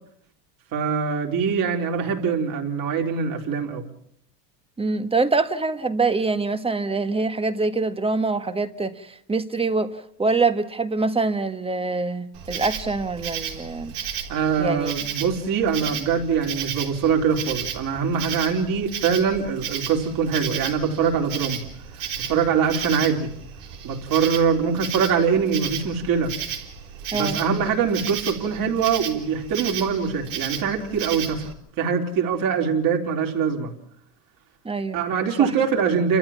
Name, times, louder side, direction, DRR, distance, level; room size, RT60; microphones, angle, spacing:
voice 1, 0.7-3.8 14.3-21.6 22.2-23.3 23.8-26.3 27.1-33.7 34.9-36.2, right 6 dB, 45° right, 2 dB, 3.9 m, -23 dB
voice 2, 4.8-9.9 10.2-13.9 14.6-14.9 27.1-27.4 34.6-35.0 35.4-35.5, right 3 dB, 10° right, 10 dB, 1.4 m, -24 dB
Insect, 12.3-31.5, right 8 dB, 85° right, 4.1 m, -33 dB
29.5 x 13.5 x 7.3 m, 0.70 s
supercardioid pair, 105°, 46 cm